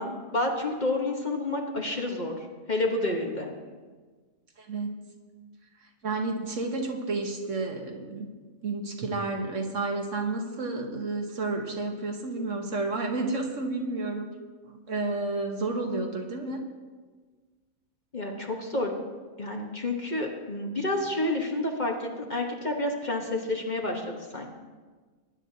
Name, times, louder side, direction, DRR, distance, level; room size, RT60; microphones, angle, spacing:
voice 1, 0.0-2.3 2.7-3.5 18.1-18.9 19.4-24.5, left 2 dB, 35° left, 1 dB, 1.2 m, -29 dB
voice 2, 4.6-5.0 5.8-8.3 8.6-14.3 14.7-16.6, right 3 dB, 60° right, 3 dB, 1.5 m, -31 dB
19.5 x 9.9 x 2.8 m, 1.4 s
omnidirectional pair, 1.5 m